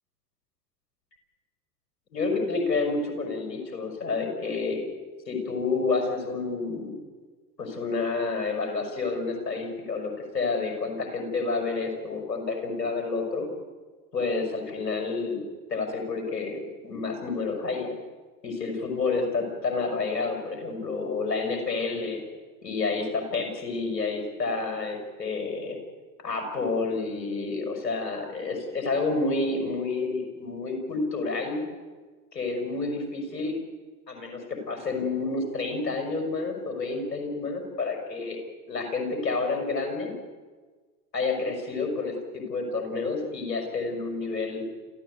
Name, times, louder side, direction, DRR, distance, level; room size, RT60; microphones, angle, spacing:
voice 1, 2.1-4.8 5.3-6.9 7.6-13.5 14.1-15.4 15.7-17.9 18.4-22.2 22.6-25.8 26.2-31.6 32.3-33.6 34.1-38.4 38.7-40.1 41.1-44.6, left 3 dB, 80° left, 3 dB, 5.9 m, -29 dB
28.0 x 15.5 x 8.3 m, 1.4 s
figure-of-eight pair, 75°, 48 cm